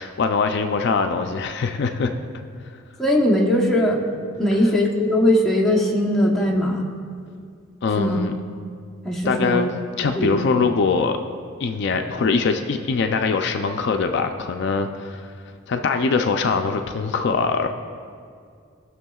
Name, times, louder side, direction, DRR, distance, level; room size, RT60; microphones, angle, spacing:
voice 1, 0.0-2.1 7.8-8.3 9.3-11.2 11.6-15.3 15.7-17.7, left 4 dB, 55° left, 6 dB, 0.4 m, -22 dB
voice 2, 3.0-4.0 4.4-6.9 8.0-8.2 9.0-9.6 10.2-10.4, left 1 dB, ahead, -3 dB, 0.9 m, -20 dB
17.5 x 6.3 x 2.3 m, 2.2 s
head